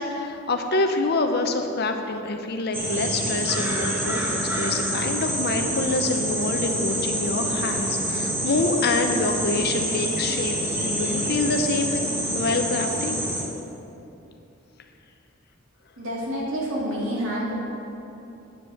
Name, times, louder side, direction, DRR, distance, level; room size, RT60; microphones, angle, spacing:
voice 1, 0.0-12.0 12.3-13.2, left 3 dB, 50° left, 5 dB, 0.7 m, -26 dB
sound 1, 2.7-13.4, right 1 dB, 10° right, 1.3 m, -27 dB
voice 2, 16.0-17.5, equal, 70° right, -5 dB, 2.8 m, -28 dB
9.3 x 8.1 x 5.8 m, 2.9 s
head